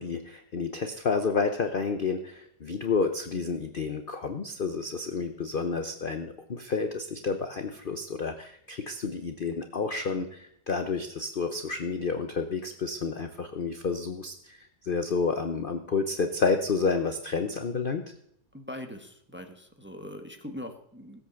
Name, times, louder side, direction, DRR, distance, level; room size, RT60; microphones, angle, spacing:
voice 1, 0.0-14.6 14.8-18.0, left 4 dB, 45° left, 7 dB, 0.7 m, -30 dB
voice 2, 18.5-21.2, left 1 dB, 5° right, 5 dB, 1.1 m, -41 dB
16.5 x 8.3 x 7.0 m, 0.71 s
omnidirectional pair, 2.0 m